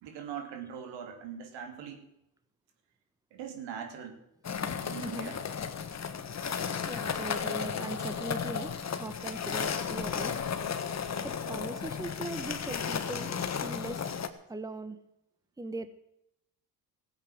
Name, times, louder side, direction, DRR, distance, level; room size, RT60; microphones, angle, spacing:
voice 1, 0.0-2.1 3.3-4.2 4.8-5.4, right 8 dB, 80° right, 6 dB, 3.0 m, -41 dB
sound 1, 4.4-14.3, left 7 dB, 40° left, 1.6 m, -34 dB
voice 2, 4.7-5.3 6.9-8.7 9.0-10.3 11.2-14.1 14.5-15.0 15.6-15.9, right 2 dB, 10° right, 11 dB, 1.1 m, -40 dB
15.0 x 8.4 x 8.7 m, 0.83 s
supercardioid pair, 85°, 43 cm